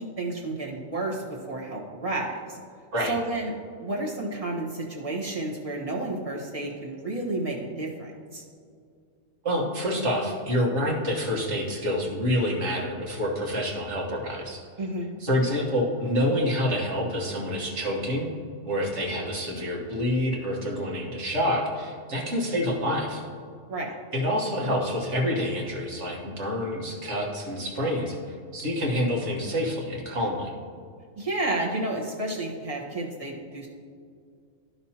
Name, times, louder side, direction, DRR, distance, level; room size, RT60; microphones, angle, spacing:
voice 1, 0.0-2.6 3.1-3.5 3.8-8.4 14.8-15.2 23.7-24.0 31.1-33.7, right 2 dB, 25° right, -3 dB, 1.3 m, -31 dB
voice 2, 9.4-14.6 15.2-18.3 18.6-23.2 24.1-30.5, equal, 60° right, -1 dB, 1.7 m, -27 dB
12.5 x 5.9 x 2.9 m, 2.2 s
omnidirectional pair, 1.4 m